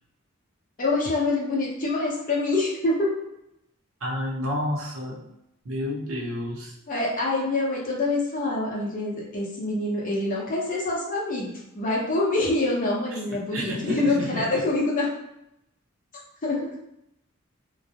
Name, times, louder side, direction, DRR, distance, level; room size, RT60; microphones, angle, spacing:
voice 1, 0.8-3.1 6.9-15.1 16.4-16.6, left 2 dB, 40° left, -4 dB, 0.7 m, -25 dB
voice 2, 4.0-5.2 5.6-6.8 13.5-14.4, left 1 dB, 75° right, -4 dB, 0.7 m, -30 dB
2.2 x 2.0 x 2.7 m, 0.83 s
head